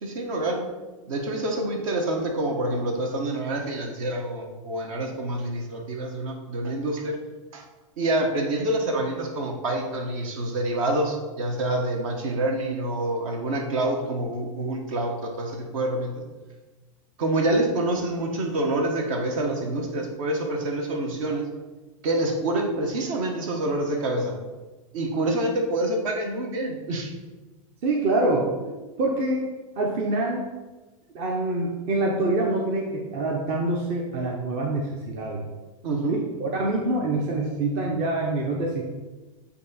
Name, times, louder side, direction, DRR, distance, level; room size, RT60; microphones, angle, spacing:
voice 1, 0.0-0.7 1.1-7.2 7.5-7.6 8.0-16.2 17.2-21.4 22.0-24.4 24.9-27.1 28.6-28.7 35.8-36.2, right 1 dB, 65° right, 2 dB, 1.3 m, -27 dB
voice 2, 27.8-28.5 29.0-29.5 29.8-30.4 31.1-35.4 36.1-38.9, right 2 dB, 45° right, -1 dB, 0.9 m, -25 dB
8.2 x 2.8 x 4.2 m, 1.2 s
hypercardioid pair, 130°, 18 cm